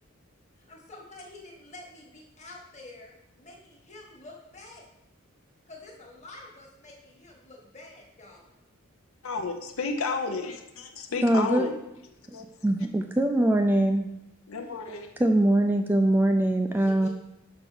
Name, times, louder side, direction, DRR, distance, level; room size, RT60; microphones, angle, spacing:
voice 1, 0.7-4.9 5.7-8.5 16.7-17.1, left 2 dB, 35° left, -1 dB, 1.4 m, -48 dB
voice 2, 9.2-11.7 12.3-12.4 14.5-15.1, left 4 dB, 80° left, 5 dB, 0.7 m, -32 dB
voice 3, 11.2-11.7 12.6-14.1 15.2-17.1, right 1 dB, 10° right, 5 dB, 0.3 m, -22 dB
5.3 x 4.5 x 6.1 m, 0.87 s
head